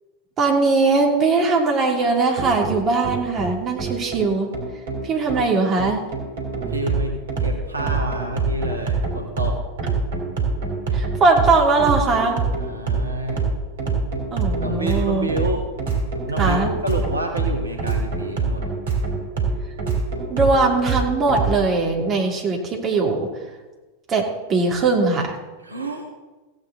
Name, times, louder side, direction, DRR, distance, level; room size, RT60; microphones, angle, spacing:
voice 1, 0.4-4.5 5.0-6.0 10.9-12.4 14.3-15.3 16.4-16.7 20.3-23.3 24.1-25.3, right 3 dB, 25° right, 0 dB, 2.7 m, -20 dB
sound 1, 2.4-21.6, right 4 dB, 60° right, 3.4 m, -25 dB
voice 2, 6.7-9.6 12.6-13.5 14.6-15.6 16.3-18.7 25.6-26.1, right 1 dB, 80° right, 3 dB, 1.5 m, -28 dB
16.0 x 9.0 x 4.0 m, 1.2 s
figure-of-eight pair, 90°, 0 cm